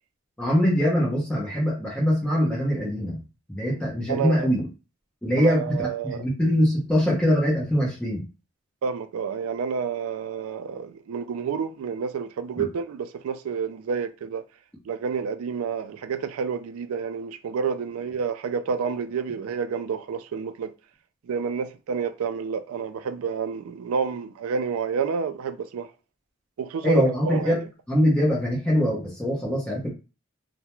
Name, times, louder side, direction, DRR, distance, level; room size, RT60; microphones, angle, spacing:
voice 1, 0.4-3.2 3.5-4.7 5.2-8.2 12.6-12.7 26.8-29.9, equal, 5° left, 0.6 m, -23 dB
voice 2, 4.1-4.5 5.4-6.2 8.8-14.4 14.9-20.7 21.3-25.9 26.6-27.5, right 6 dB, 85° right, 0.3 m, -29 dB
2.3 x 2.1 x 2.9 m
head